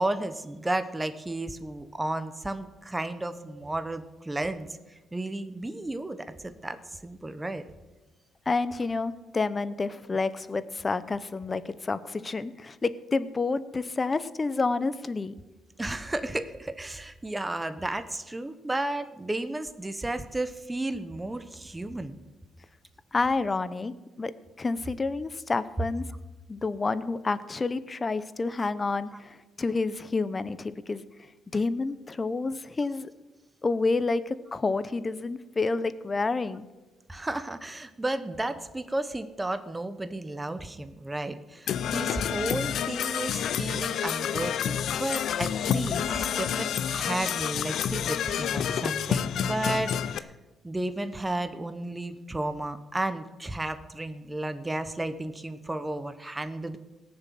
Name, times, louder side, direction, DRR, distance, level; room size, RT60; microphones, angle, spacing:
voice 1, 0.0-7.6 15.8-22.2 37.1-50.3 50.6-56.8, right 2 dB, 15° right, 10 dB, 1.0 m, -33 dB
voice 2, 8.5-15.4 23.1-24.3 24.6-26.1 26.5-31.1 31.5-33.1 33.6-36.7, left 3 dB, 30° left, 14 dB, 0.8 m, -29 dB
Percussion / Brass instrument, 41.7-50.2, left 9 dB, 70° left, 0.6 m, -29 dB
17.5 x 7.1 x 7.7 m, 1.1 s
cardioid pair, 90°, 0 cm